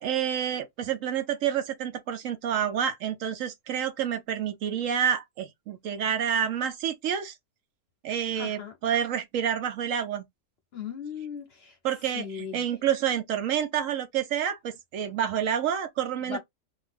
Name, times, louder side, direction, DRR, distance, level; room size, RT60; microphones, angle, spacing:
voice 1, 0.0-7.4 8.0-10.2 11.8-16.4, right 9 dB, 70° right, 0.9 m, -28 dB
voice 2, 8.4-8.7 10.7-11.8 12.1-12.6 16.2-16.4, left 7 dB, 50° left, 0.8 m, -37 dB
2.7 x 2.5 x 3.2 m
omnidirectional pair, 1.6 m